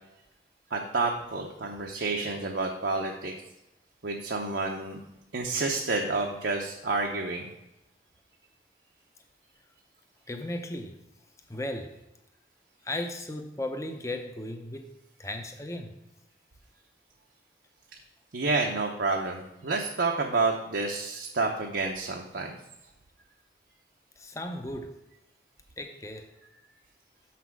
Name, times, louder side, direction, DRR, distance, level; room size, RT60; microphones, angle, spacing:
voice 1, 0.7-3.3 4.0-5.0 5.3-7.5 18.3-22.6, right 3 dB, 70° right, 0 dB, 0.8 m, -29 dB
voice 2, 10.3-11.0 11.5-12.0 12.8-14.9 15.2-15.9 24.2-25.0 25.8-26.3, left 1 dB, 15° left, 5 dB, 0.7 m, -36 dB
7.1 x 5.9 x 4.7 m, 0.90 s
head